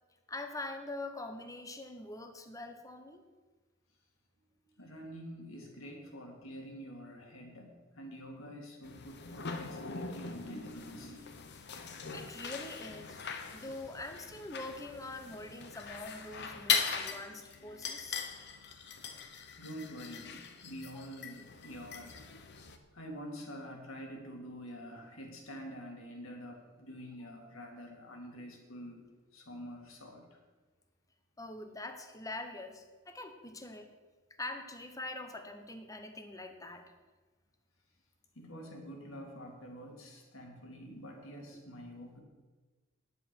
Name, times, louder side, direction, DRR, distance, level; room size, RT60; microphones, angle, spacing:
voice 1, 0.3-3.2 12.1-13.2 13.5-18.3 31.4-33.9 34.4-36.9, left 2 dB, 15° left, 6 dB, 1.1 m, -44 dB
voice 2, 4.6-11.4 19.6-22.7 22.9-29.1 29.3-30.4 38.3-42.2, equal, 75° left, 2 dB, 2.4 m, -47 dB
sound 1, 8.8-22.8, left 6 dB, 55° left, 0.9 m, -40 dB
9.9 x 8.2 x 6.2 m, 1.3 s
head